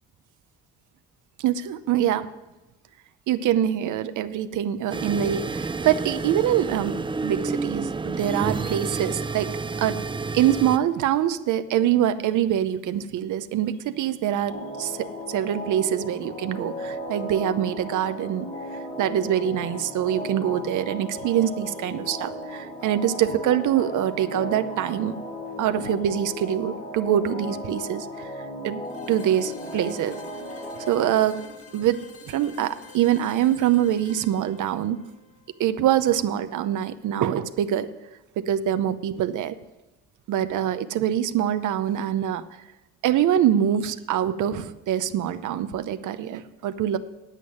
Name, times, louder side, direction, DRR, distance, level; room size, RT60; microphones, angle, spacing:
voice 1, 1.4-2.3 3.3-9.5 9.8-10.0 10.3-25.1 25.6-28.3 28.6-28.8 29.1-30.2 30.9-31.4 31.7-35.0 35.6-37.9 38.4-39.6 40.3-42.4 43.0-47.0, right 10 dB, 80° right, 11 dB, 0.8 m, -24 dB
sound 1, 4.9-10.8, right 4 dB, 15° right, 0.5 m, -30 dB
sound 2, 14.5-31.1, left 1 dB, 35° left, 3.3 m, -36 dB
sound 3, 28.8-36.7, left 5 dB, 50° left, 1.7 m, -48 dB
10.0 x 7.7 x 9.7 m, 1.0 s
cardioid pair, 90°, 30 cm